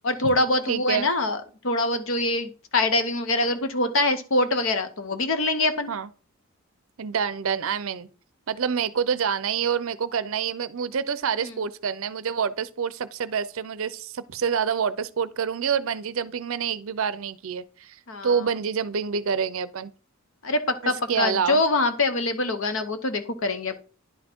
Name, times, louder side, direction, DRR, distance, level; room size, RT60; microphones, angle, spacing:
voice 1, 0.0-1.4 1.6-5.9 11.4-11.5 18.1-18.3 20.4-23.8, left 2 dB, 65° left, 0.8 m, -24 dB
voice 2, 0.7-1.1 5.9-6.1 7.0-8.1 8.5-18.0 18.2-19.9 21.1-21.6, right 7 dB, 70° right, 0.5 m, -27 dB
10.5 x 4.3 x 4.4 m
head